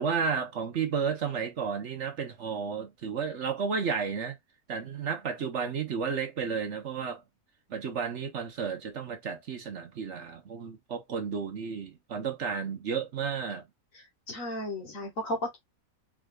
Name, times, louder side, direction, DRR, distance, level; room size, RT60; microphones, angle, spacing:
voice 1, 0.0-4.4 4.7-7.2 7.7-13.6, right 6 dB, 55° right, 1.1 m, -32 dB
voice 2, 14.0-15.6, left 1 dB, 65° left, 1.9 m, -34 dB
4.8 x 3.1 x 2.3 m
omnidirectional pair, 1.5 m